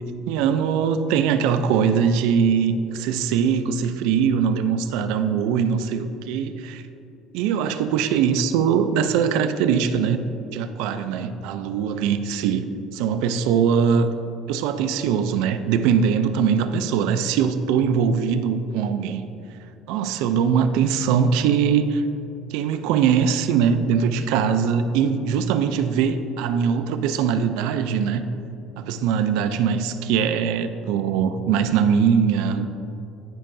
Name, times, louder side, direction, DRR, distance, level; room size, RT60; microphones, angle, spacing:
voice 1, 0.3-6.8 7.3-12.7 12.9-14.1 14.5-19.2 19.9-22.0 22.5-28.3 28.8-32.7, right 7 dB, 80° right, 10 dB, 0.4 m, -21 dB
13.5 x 5.5 x 2.6 m, 2.8 s
cardioid pair, 170°, 0 cm